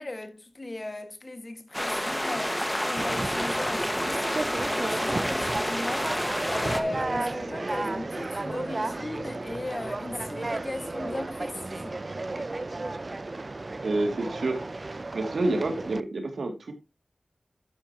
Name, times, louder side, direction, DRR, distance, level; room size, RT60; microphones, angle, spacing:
voice 1, 0.0-2.6 2.9-6.2 6.5-12.0, left 2 dB, 40° left, 1.8 m, -37 dB
sound 1, 1.7-6.8, equal, 10° left, 1.6 m, -29 dB
Conversation, 3.0-16.0, right 2 dB, 45° right, 0.6 m, -33 dB
voice 2, 13.8-14.6 15.1-16.7, right 2 dB, 85° right, 2.4 m, -28 dB
12.0 x 9.0 x 2.9 m
wide cardioid pair, 65°, 0 cm